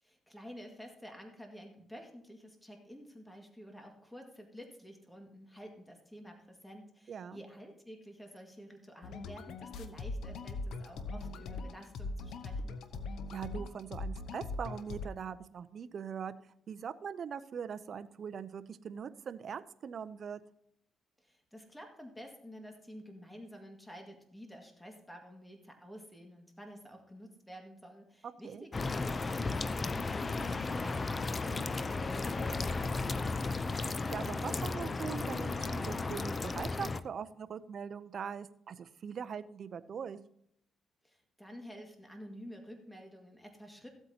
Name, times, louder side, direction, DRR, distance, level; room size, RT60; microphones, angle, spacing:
voice 1, 0.0-12.8 21.2-33.6 41.0-43.9, equal, 5° left, 2 dB, 1.9 m, -50 dB
voice 2, 7.1-7.4 13.3-16.3 16.7-20.4 28.2-28.6 34.1-40.2, right 7 dB, 55° right, 13 dB, 0.6 m, -41 dB
sound 1, 9.0-15.1, left 3 dB, 75° left, 0.8 m, -41 dB
sound 2, 28.7-37.0, left 3 dB, 30° left, 0.5 m, -34 dB
15.0 x 8.1 x 2.9 m, 0.74 s
cardioid pair, 90°, 0 cm